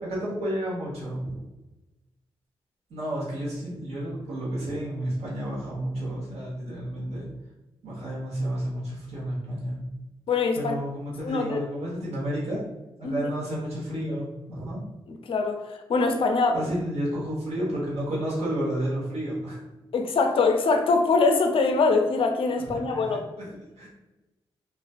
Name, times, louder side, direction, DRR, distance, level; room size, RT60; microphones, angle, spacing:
voice 1, 0.0-1.4 2.9-7.3 7.8-9.8 10.5-12.6 13.0-14.8 16.5-19.6 22.6-23.5 23.8-23.9, right 1 dB, 75° right, -6 dB, 1.0 m, -31 dB
voice 2, 10.3-10.7 11.2-11.6 13.0-13.2 15.3-16.6 19.9-23.2, left 4 dB, 60° left, 4 dB, 0.4 m, -23 dB
2.4 x 2.2 x 2.3 m, 1.0 s
supercardioid pair, 45°, 11 cm